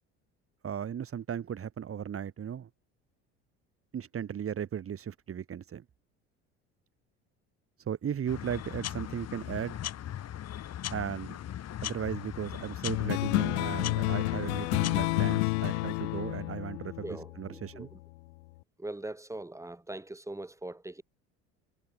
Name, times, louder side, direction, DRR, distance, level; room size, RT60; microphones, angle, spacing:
voice 1, 0.6-2.7 3.9-5.8 7.9-9.8 10.9-11.3 11.8-16.9 17.4-17.9, right 8 dB, 40° right, 3.0 m, -36 dB
sound 1, 8.3-15.4, left 11 dB, 50° left, 2.4 m, -39 dB
sound 2, 12.9-17.8, left 24 dB, 85° left, 1.1 m, -30 dB
voice 2, 14.3-14.7 17.0-18.0 18.8-21.0, right 2 dB, 10° right, 4.5 m, -42 dB
supercardioid pair, 75°, 33 cm